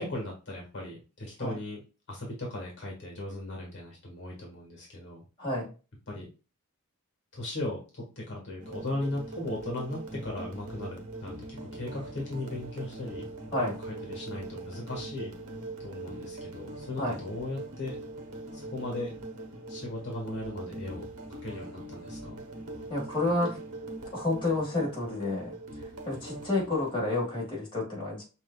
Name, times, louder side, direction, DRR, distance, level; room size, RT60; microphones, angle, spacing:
voice 1, 0.0-1.8 2.1-5.2 6.1-6.3 7.3-13.3 13.6-15.3 15.8-18.0 18.5-19.1 19.7-21.0 21.3-22.4, left 1 dB, 55° left, -1 dB, 1.5 m, -37 dB
voice 2, 5.4-5.7 13.5-13.8 17.0-17.2 22.9-23.6 24.1-25.5 26.1-28.2, left 2 dB, 25° left, -4 dB, 1.8 m, -30 dB
sound 1, 8.6-27.0, right 2 dB, 75° right, 0.9 m, -42 dB
6.1 x 2.7 x 2.3 m, 0.33 s
head